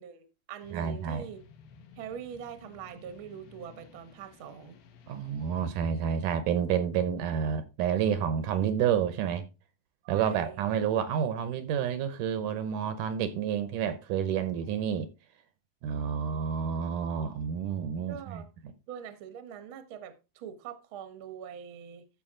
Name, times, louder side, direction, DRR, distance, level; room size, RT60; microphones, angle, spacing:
voice 1, 0.0-1.4 2.0-4.8 10.0-10.6 14.6-14.8 18.1-18.5 18.9-22.1, right 8 dB, 55° right, 1.5 m, -43 dB
sound 1, 0.6-5.7, left 6 dB, 80° left, 3.1 m, -55 dB
voice 2, 0.7-1.3 5.1-9.4 10.1-15.1 15.8-18.4, right 8 dB, 75° right, 2.2 m, -29 dB
14.0 x 5.2 x 3.7 m
omnidirectional pair, 4.1 m